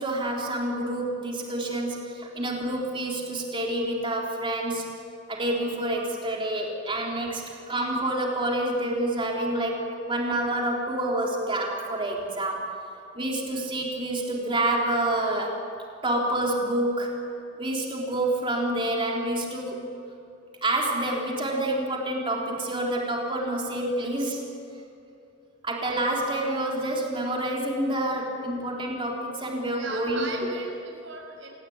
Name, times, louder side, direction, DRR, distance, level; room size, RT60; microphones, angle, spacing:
voice 1, 0.0-4.9 5.3-12.7 13.2-15.6 16.0-17.1 17.6-19.8 20.6-24.4 25.6-30.5, right 1 dB, 25° right, -1 dB, 3.5 m, -28 dB
voice 2, 29.7-31.5, right 3 dB, 75° right, 1 dB, 6.8 m, -38 dB
27.5 x 18.0 x 9.5 m, 2.6 s
head